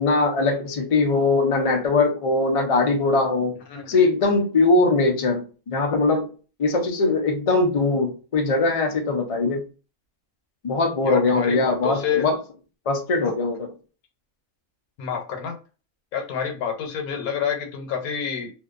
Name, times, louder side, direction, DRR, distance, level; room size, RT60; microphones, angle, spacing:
voice 1, 0.0-3.6 3.9-6.3 6.6-9.6 10.6-12.4 12.9-13.7, left 3 dB, 60° left, 0.3 m, -21 dB
voice 2, 11.0-12.3 15.0-15.6 16.1-18.5, left 7 dB, 85° left, 1.2 m, -28 dB
2.6 x 2.2 x 2.4 m
omnidirectional pair, 1.5 m